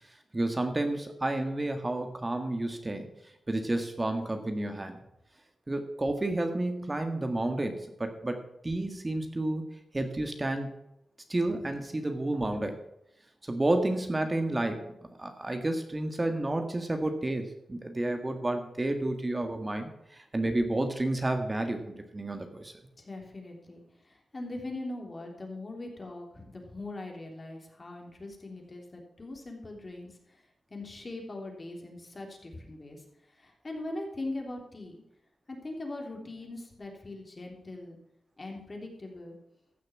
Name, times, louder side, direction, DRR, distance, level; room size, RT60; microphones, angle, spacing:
voice 1, 0.3-3.1 3.5-5.0 5.7-9.6 9.9-10.7 11.3-12.8 13.4-14.9 15.2-22.7, right 2 dB, 25° right, 6 dB, 1.7 m, -30 dB
voice 2, 23.0-30.4 30.7-35.0 35.5-38.0 38.4-39.4, left 2 dB, 40° left, 1 dB, 3.2 m, -41 dB
15.0 x 6.5 x 6.0 m, 0.83 s
cardioid pair, 60°, 0 cm